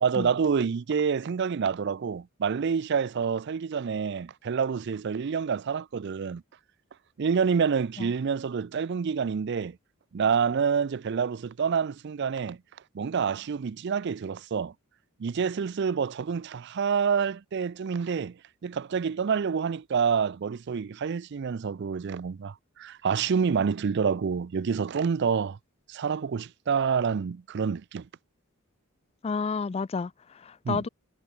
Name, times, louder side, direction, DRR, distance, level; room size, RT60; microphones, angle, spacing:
voice 1, 0.0-6.4 7.2-9.8 10.1-12.6 12.9-14.7 15.2-25.6 25.9-28.1 30.6-30.8, right 6 dB, 55° right, 0.4 m, -27 dB
voice 2, 29.2-30.9, left 5 dB, 30° left, 0.3 m, -31 dB
head